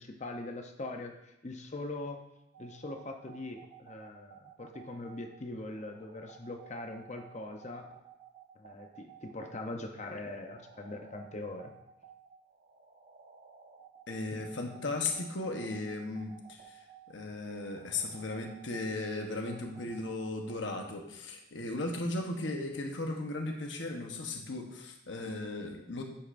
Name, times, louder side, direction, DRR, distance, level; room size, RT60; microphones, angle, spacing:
voice 1, 0.0-2.2 2.6-7.9 8.6-11.7 14.3-14.5, left 2 dB, 40° left, 4 dB, 0.7 m, -42 dB
sound 1, 2.5-20.5, right 8 dB, 60° right, 1.2 m, -55 dB
voice 2, 14.1-16.8 17.1-26.0, left 2 dB, 75° left, 3 dB, 1.1 m, -36 dB
9.9 x 8.5 x 2.6 m, 0.87 s
head